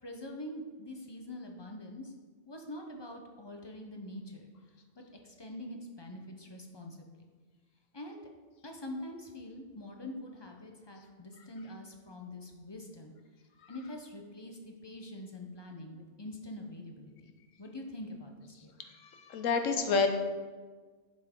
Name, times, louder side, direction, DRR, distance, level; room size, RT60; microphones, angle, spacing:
voice 1, 0.0-2.1 2.5-4.5 5.0-7.1 7.9-8.2 8.6-13.1 13.7-17.3 17.6-18.7, left 1 dB, 25° left, 2 dB, 0.7 m, -44 dB
voice 2, 19.1-20.1, left 4 dB, 85° left, 6 dB, 1.2 m, -28 dB
7.9 x 6.5 x 3.7 m, 1.4 s
omnidirectional pair, 1.3 m